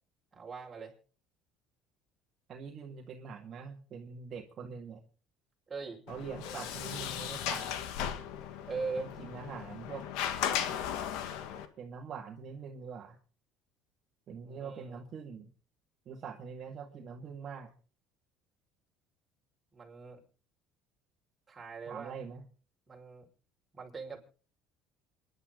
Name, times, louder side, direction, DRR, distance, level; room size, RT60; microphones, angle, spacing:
voice 1, 0.3-0.9 5.7-6.0 8.7-9.1 14.4-15.0 19.7-20.2 21.5-22.1 22.9-23.3 23.7-24.2, right 4 dB, 20° right, -1 dB, 5.4 m, -41 dB
voice 2, 2.5-5.0 6.1-7.9 9.0-10.1 11.8-13.2 14.3-15.5 16.1-17.7 21.9-22.4, right 6 dB, 40° right, 1 dB, 2.1 m, -44 dB
Sliding door, 6.1-11.6, left 9 dB, 80° left, 2.0 m, -36 dB
27.0 x 11.0 x 3.9 m, 0.40 s
cardioid pair, 120°, 0 cm